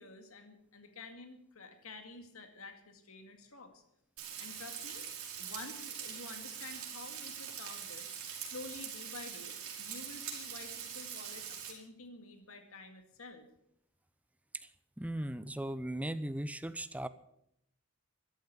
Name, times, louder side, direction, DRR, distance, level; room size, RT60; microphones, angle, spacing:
voice 1, 0.0-3.8 4.4-5.1 5.4-8.1 8.4-13.5, left 3 dB, 65° left, 6 dB, 2.1 m, -50 dB
Frying (food), 4.2-11.7, right 8 dB, 70° right, 4.9 m, -43 dB
voice 2, 15.0-17.1, right 1 dB, 5° right, 14 dB, 0.6 m, -37 dB
14.0 x 12.0 x 6.9 m, 0.75 s
head